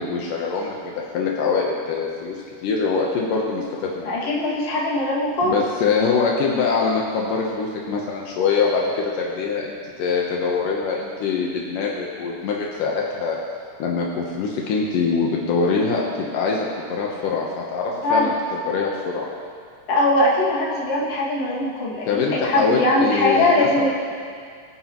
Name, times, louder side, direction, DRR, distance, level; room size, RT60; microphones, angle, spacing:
voice 1, 0.0-4.1 5.4-13.4 13.8-19.3 22.1-23.9, left 5 dB, 80° left, -2 dB, 2.6 m, -24 dB
voice 2, 4.0-5.6 18.0-18.4 19.9-23.9, left 1 dB, 50° left, -5 dB, 3.0 m, -21 dB
22.5 x 10.0 x 3.0 m, 2.2 s
omnidirectional pair, 3.8 m